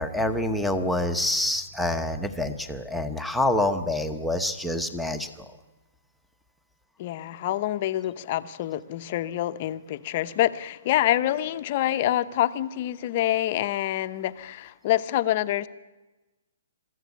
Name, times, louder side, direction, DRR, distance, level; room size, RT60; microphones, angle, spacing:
voice 1, 0.0-5.5, left 1 dB, ahead, 4 dB, 0.9 m, -27 dB
voice 2, 7.0-15.7, left 13 dB, 30° left, 11 dB, 0.8 m, -26 dB
21.5 x 14.0 x 9.4 m, 1.1 s
hypercardioid pair, 170°, 0 cm